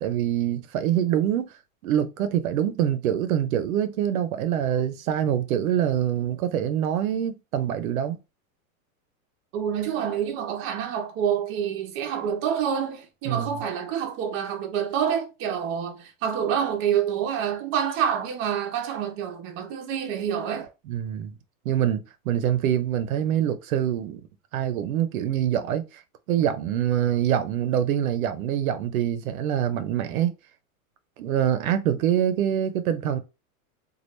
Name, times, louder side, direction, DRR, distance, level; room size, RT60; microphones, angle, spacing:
voice 1, 0.0-1.5 1.8-8.2 13.3-13.5 20.9-21.3 21.6-24.3 24.5-26.0 26.3-30.3 31.2-33.2, right 10 dB, 70° right, 0.7 m, -25 dB
voice 2, 9.5-20.7, right 8 dB, 30° right, 0.7 m, -27 dB
3.1 x 2.4 x 3.1 m
supercardioid pair, 150°, 42 cm